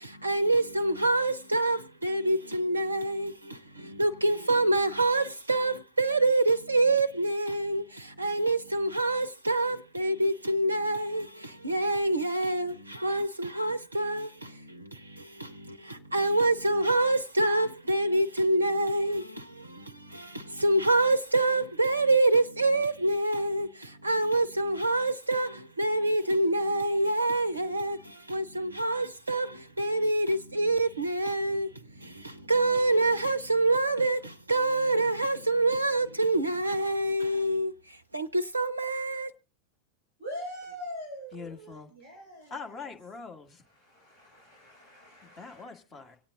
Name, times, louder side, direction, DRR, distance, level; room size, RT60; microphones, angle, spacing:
voice 1, 0.0-39.3, right 2 dB, 80° right, 0.7 m, -26 dB
voice 2, 40.2-42.9 43.8-45.8, equal, 75° left, 6.4 m, -43 dB
voice 3, 41.3-41.9 42.5-43.6 45.4-46.2, left 4 dB, 25° left, 1.9 m, -42 dB
25.0 x 8.6 x 3.7 m
figure-of-eight pair, 90°, 0 cm